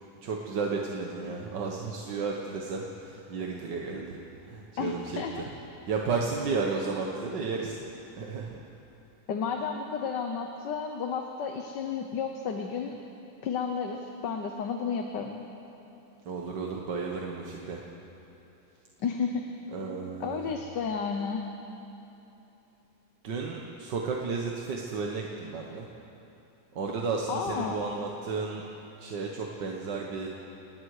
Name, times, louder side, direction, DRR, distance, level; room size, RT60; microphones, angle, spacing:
voice 1, 0.2-5.5 5.9-7.9 8.1-8.6 16.3-17.9 19.7-20.5 23.2-25.9 26.7-28.7 29.0-30.3, right 4 dB, 90° right, 0 dB, 2.0 m, -33 dB
voice 2, 4.8-5.5 9.3-13.0 13.4-15.4 19.0-19.4 20.2-21.4 27.3-27.8, left 6 dB, 85° left, 3 dB, 1.7 m, -32 dB
29.5 x 19.0 x 4.9 m, 2.9 s
omnidirectional pair, 1.8 m